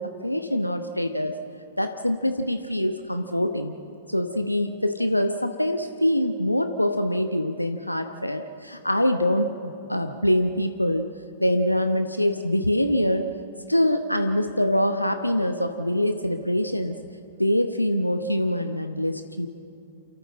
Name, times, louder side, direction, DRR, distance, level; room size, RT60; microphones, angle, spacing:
voice 1, 0.0-1.4 1.8-3.7 4.1-11.1 11.4-13.3 13.7-17.0 17.4-19.5, left 1 dB, 90° left, 7 dB, 0.9 m, -24 dB
28.5 x 13.5 x 7.6 m, 2.7 s
figure-of-eight pair, 105°, 0 cm